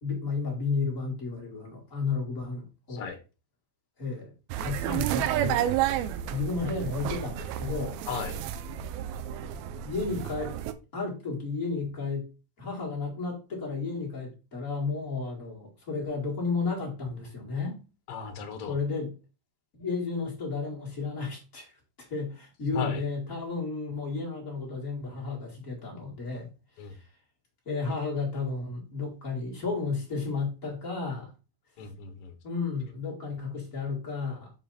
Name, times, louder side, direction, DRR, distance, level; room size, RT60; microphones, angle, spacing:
voice 1, 0.0-3.1 4.0-4.3 4.6-5.7 6.3-8.0 9.8-10.6 10.9-12.3 12.6-17.8 18.7-19.1 19.7-21.7 22.0-26.5 26.8-27.1 27.7-31.3 32.4-34.5, left 4 dB, 25° left, 1.9 m, -33 dB
sound 1, 4.5-10.7, right 11 dB, 85° right, 2.5 m, -31 dB
voice 2, 8.1-8.4 18.1-18.7 22.7-23.0 26.8-26.9 31.8-32.3, left 7 dB, 85° left, 1.3 m, -35 dB
6.7 x 5.0 x 4.1 m
omnidirectional pair, 4.3 m